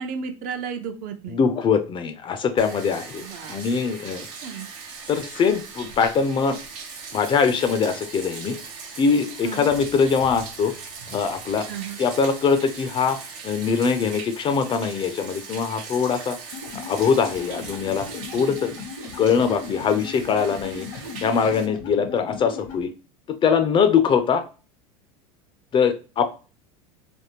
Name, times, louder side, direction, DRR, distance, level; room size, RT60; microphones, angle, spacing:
voice 1, 0.0-1.4 3.2-3.7 4.1-4.7 9.4-9.7 11.7-12.0, right 6 dB, 50° right, 7 dB, 0.6 m, -34 dB
voice 2, 1.3-4.3 5.1-6.6 7.1-8.6 9.0-10.7 11.1-11.7 12.0-16.4 16.9-18.7 19.2-20.9 21.2-22.9 23.4-24.4 25.7-26.3, left 6 dB, 30° left, 9 dB, 0.4 m, -22 dB
Bathtub (filling or washing), 2.6-21.7, right 5 dB, 80° right, 0.8 m, -40 dB
sound 1, 16.5-22.9, left 4 dB, 80° left, 1.0 m, -37 dB
3.5 x 2.1 x 2.8 m, 0.33 s
supercardioid pair, 105°, 17 cm